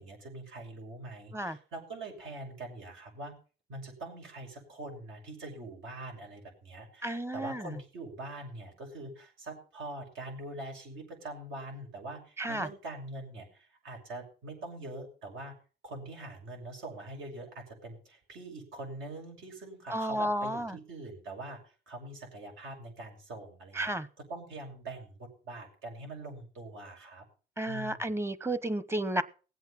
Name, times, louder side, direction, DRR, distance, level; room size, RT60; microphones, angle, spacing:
voice 1, 0.0-3.3 3.7-15.5 15.8-23.9 24.3-27.2 27.6-28.1, right 2 dB, 80° right, 1 dB, 6.6 m, -43 dB
voice 2, 7.0-7.7 12.4-12.7 19.9-20.7 23.8-24.1 27.6-29.2, right 1 dB, 10° right, 16 dB, 0.9 m, -32 dB
19.0 x 8.2 x 5.7 m, 0.38 s
cardioid pair, 90°, 20 cm